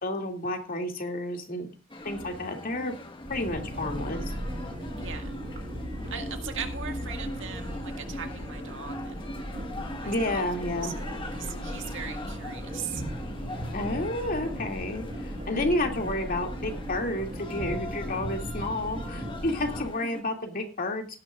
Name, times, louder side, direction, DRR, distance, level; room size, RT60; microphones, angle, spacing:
voice 1, 0.0-1.7 2.0-3.0 3.3-4.2 10.1-10.9 13.7-21.1, left 1 dB, 45° left, 3 dB, 2.5 m, -30 dB
sound 1, 1.9-20.2, left 1 dB, 25° left, 1.6 m, -41 dB
Demon Lion Monster Growl Roar, 2.0-7.3, left 1 dB, 70° left, 7.3 m, -52 dB
sound 2, 3.3-19.9, equal, 40° right, 1.8 m, -37 dB
voice 2, 5.0-5.4 6.1-9.3 10.0-10.4 10.8-11.1 11.4-13.0, right 7 dB, 65° right, 5 dB, 1.9 m, -39 dB
17.5 x 11.0 x 2.5 m, 0.29 s
head